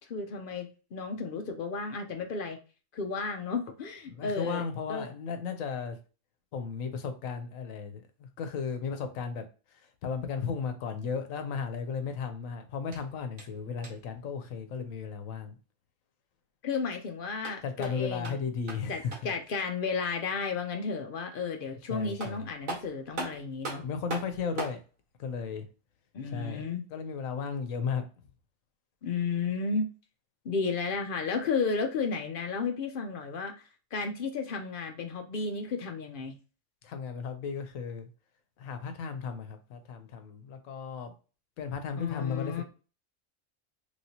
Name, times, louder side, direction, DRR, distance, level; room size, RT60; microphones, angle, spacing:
voice 1, 0.1-2.6 2.9-4.6 4.9-5.1 16.6-18.4 18.9-23.9 26.1-26.9 29.0-29.9 30.4-33.5 33.9-36.3 42.0-42.6, left 4 dB, 60° left, 0.6 m, -33 dB
voice 2, 4.1-6.0 6.5-9.4 9.7-15.6 17.6-19.3 21.9-22.5 23.8-24.8 25.2-25.7 26.2-26.6 26.9-28.0 36.8-38.1 38.6-41.1 41.6-42.6, left 6 dB, 85° left, 1.1 m, -35 dB
sound 1, 12.9-14.2 17.2-19.4 21.7-21.8 22.2-24.8, right 3 dB, 80° right, 1.7 m, -41 dB
3.2 x 3.0 x 2.8 m
omnidirectional pair, 1.4 m